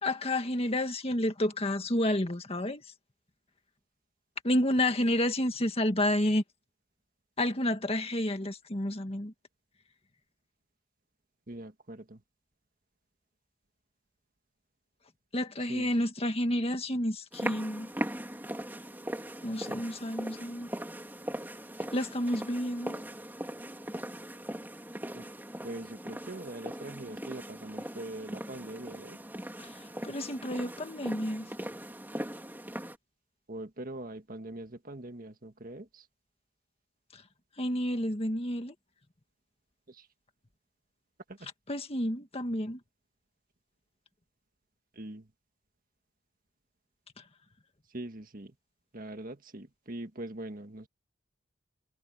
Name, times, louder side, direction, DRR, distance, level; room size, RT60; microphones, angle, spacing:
voice 1, 0.0-2.8 4.4-6.4 7.4-9.3 15.3-17.9 19.4-20.7 21.9-23.0 29.6-31.5 37.1-37.2 37.6-38.7 41.7-42.8, left 1 dB, 30° left, 1.9 m, -30 dB
voice 2, 11.5-12.2 15.7-15.9 25.1-25.3 25.6-29.2 33.5-36.1 39.9-40.1 41.3-41.5 44.9-45.3 47.9-48.5 48.9-50.9, right 1 dB, 40° right, 1.7 m, -42 dB
sound 1, 17.3-33.0, right 1 dB, 10° right, 2.8 m, -40 dB
head